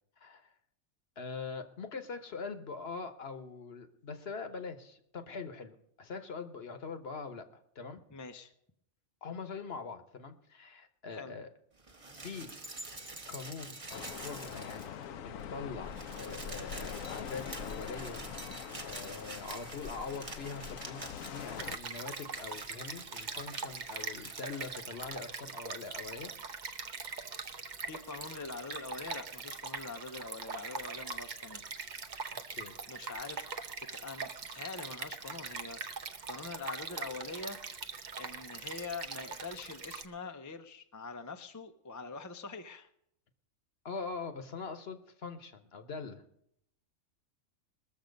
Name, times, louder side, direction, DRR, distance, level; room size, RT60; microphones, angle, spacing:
voice 1, 0.2-0.5 1.2-8.0 9.2-11.5 12.2-12.5 13.3-18.2 18.8-26.3 32.5-33.0 43.8-46.2, left 4 dB, 50° left, 9 dB, 1.2 m, -43 dB
voice 2, 8.1-8.5 11.1-11.3 18.3-18.4 27.9-31.6 32.9-33.6 33.9-37.9 38.2-42.9, left 4 dB, 20° left, 7 dB, 0.5 m, -44 dB
sound 1, 11.8-15.1 15.4-15.5 15.7-24.7 25.7-25.8, right 2 dB, 25° right, 1.2 m, -47 dB
sound 2, 13.9-21.8, left 8 dB, 80° left, 1.1 m, -43 dB
Stream, 21.6-40.0, right 5 dB, 40° right, 0.8 m, -42 dB
21.0 x 7.2 x 5.2 m, 0.74 s
omnidirectional pair, 1.4 m